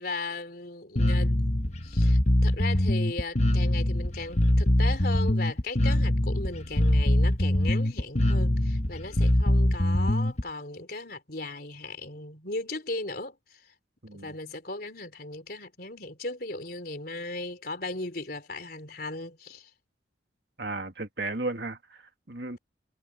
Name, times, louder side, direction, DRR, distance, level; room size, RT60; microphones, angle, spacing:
voice 1, 0.0-1.4 1.8-13.7 14.1-19.7, left 2 dB, 50° left, 4.0 m, -37 dB
Bass guitar, 1.0-10.4, left 1 dB, 35° left, 1.2 m, -23 dB
voice 2, 14.0-14.4 20.6-22.6, right 2 dB, 60° right, 2.4 m, -35 dB
head